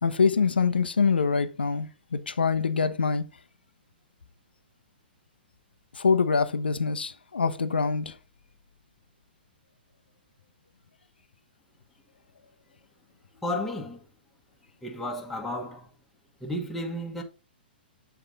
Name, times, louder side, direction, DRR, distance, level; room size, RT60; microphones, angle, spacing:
voice 1, 0.0-3.3 5.9-8.2, left 5 dB, 75° left, 0.6 m, -25 dB
voice 2, 13.4-14.1 14.8-15.9 16.4-17.2, left 1 dB, 5° left, 1.1 m, -33 dB
8.0 x 3.6 x 3.9 m
figure-of-eight pair, 110°, 6 cm